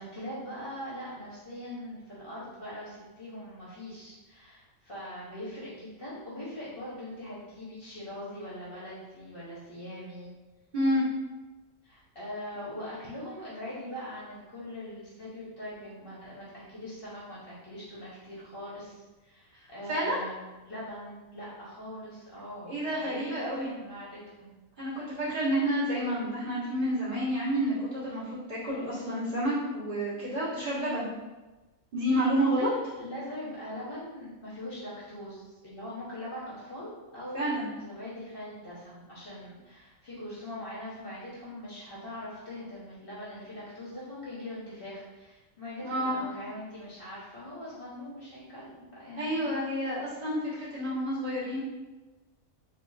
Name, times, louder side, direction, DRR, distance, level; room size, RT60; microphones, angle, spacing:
voice 1, 0.0-10.3 11.8-24.5 32.5-32.7 33.0-37.4 37.8-49.5, left 1 dB, 45° left, -8 dB, 1.0 m, -42 dB
voice 2, 19.9-20.2 22.7-23.7 24.8-28.2 28.5-31.1 31.9-32.7 37.3-37.7 45.8-46.3 49.2-51.6, equal, 40° right, -11 dB, 1.5 m, -29 dB
3.5 x 3.1 x 2.6 m, 1.2 s
omnidirectional pair, 1.4 m